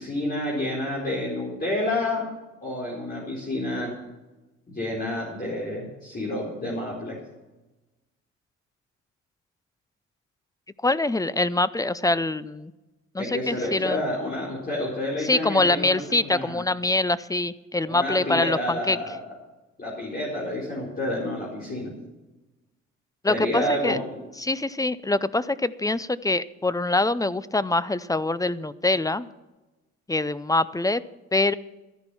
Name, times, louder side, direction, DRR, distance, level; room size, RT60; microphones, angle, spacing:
voice 1, 0.0-2.3 2.6-3.9 4.7-7.2 13.2-16.6 17.8-19.2 19.8-21.9 23.3-24.2, left 1 dB, 30° left, -4 dB, 4.3 m, -29 dB
voice 2, 10.8-12.7 13.1-14.0 15.2-19.0 23.2-24.0 24.4-29.3 30.1-31.0 31.3-31.5, left 2 dB, 10° left, 17 dB, 0.5 m, -24 dB
14.0 x 10.5 x 5.6 m, 1.1 s
cardioid pair, 90°, 30 cm